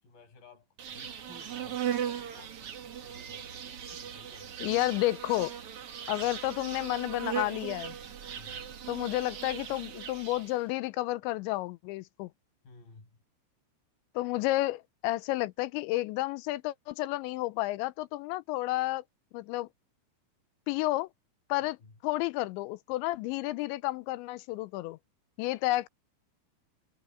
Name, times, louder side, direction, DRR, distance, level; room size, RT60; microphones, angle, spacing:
voice 1, 0.0-4.8 8.3-8.7 12.6-13.1 21.6-21.9, left 3 dB, 50° left, 8.6 m, -56 dB
Insect, 0.8-10.6, right 9 dB, 70° right, 1.3 m, -38 dB
voice 2, 4.6-5.5 6.1-8.0 8.9-12.3 14.2-19.0 19.3-19.7 20.7-21.1 21.5-21.8 22.0-25.0 25.4-25.9, left 18 dB, 90° left, 3.0 m, -31 dB
omnidirectional pair, 5.2 m